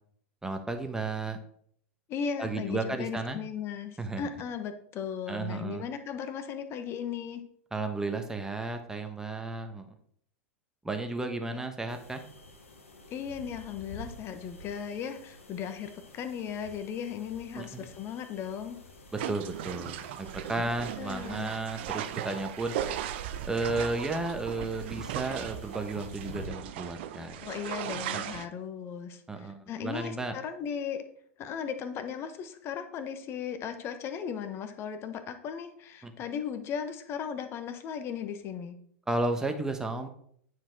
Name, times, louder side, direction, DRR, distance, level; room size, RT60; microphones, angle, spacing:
voice 1, 0.4-1.4 2.4-3.4 4.0-4.2 5.3-5.8 7.7-9.9 10.8-12.2 17.5-17.8 19.1-22.7 23.4-27.4 29.3-30.3 36.0-36.1 39.1-40.1, right 2 dB, 10° right, 6 dB, 1.3 m, -33 dB
voice 2, 2.1-7.4 11.5-11.6 13.1-18.8 21.0-21.5 27.4-31.0 31.4-38.8, left 7 dB, 35° left, 9 dB, 1.1 m, -37 dB
sound 1, 11.9-26.5, left 1 dB, 80° left, 1.5 m, -50 dB
sound 2, 19.2-28.5, right 11 dB, 55° right, 0.6 m, -37 dB
9.5 x 4.8 x 4.6 m, 0.64 s
figure-of-eight pair, 90°, 7 cm